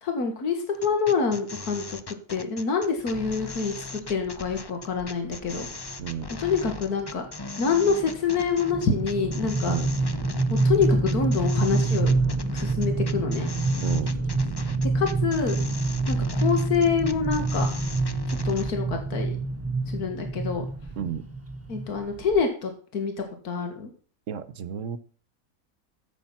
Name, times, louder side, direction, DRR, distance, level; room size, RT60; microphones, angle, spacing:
voice 1, 0.0-5.7 6.4-7.3 7.6-9.7 10.5-12.1 12.5-13.5 14.9-15.6 16.1-17.7 18.3-19.3 19.9-20.7 21.7-23.9, left 5 dB, 85° left, 5 dB, 2.2 m, -26 dB
sound 1, 0.7-18.7, left 3 dB, 30° left, 0.5 m, -39 dB
sound 2, 3.3-3.6 4.4-4.5 4.9-5.0 5.3-5.6 6.0-22.4, right 2 dB, 10° right, 1.1 m, -27 dB
voice 2, 13.8-14.1 21.0-21.2 24.3-25.0, right 8 dB, 60° right, 15 dB, 1.1 m, -32 dB
13.5 x 8.4 x 5.8 m, 0.41 s
omnidirectional pair, 1.6 m